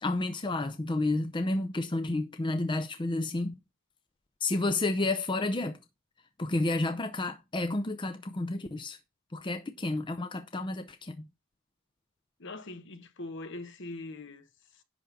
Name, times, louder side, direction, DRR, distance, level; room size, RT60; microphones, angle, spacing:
voice 1, 0.0-3.5 4.4-5.8 6.4-9.0 9.3-11.3, left 2 dB, 20° left, 0.6 m, -30 dB
voice 2, 12.4-14.4, left 2 dB, 60° left, 1.2 m, -41 dB
11.0 x 3.7 x 7.0 m
head